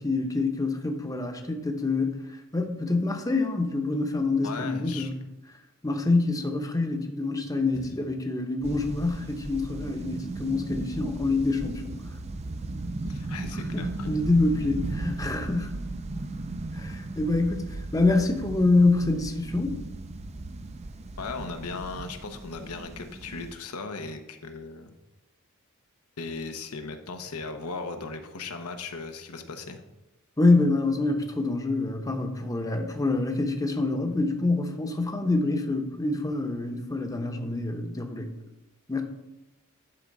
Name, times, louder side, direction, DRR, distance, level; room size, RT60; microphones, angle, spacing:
voice 1, 0.0-2.2 2.5-5.2 5.8-12.0 13.7-15.8 16.7-19.8 30.4-38.3 38.9-39.0, left 2 dB, 15° left, 4 dB, 0.8 m, -26 dB
voice 2, 4.4-5.1 7.8-7.9 13.0-14.1 21.2-24.9 26.2-29.8, left 4 dB, 80° left, 6 dB, 0.9 m, -37 dB
sound 1, 8.6-23.6, right 2 dB, 30° right, 0.5 m, -36 dB
10.5 x 3.6 x 5.4 m, 0.95 s
head